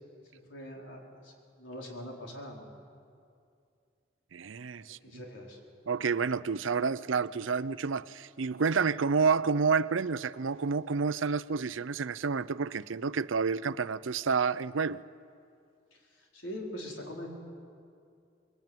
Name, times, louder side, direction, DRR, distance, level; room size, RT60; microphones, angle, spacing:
voice 1, 0.3-2.7 4.8-5.6 16.2-17.3, equal, 80° left, 4.7 m, -43 dB
voice 2, 4.3-5.2 5.9-15.0, right 5 dB, 85° right, 0.6 m, -29 dB
24.0 x 21.0 x 9.2 m
head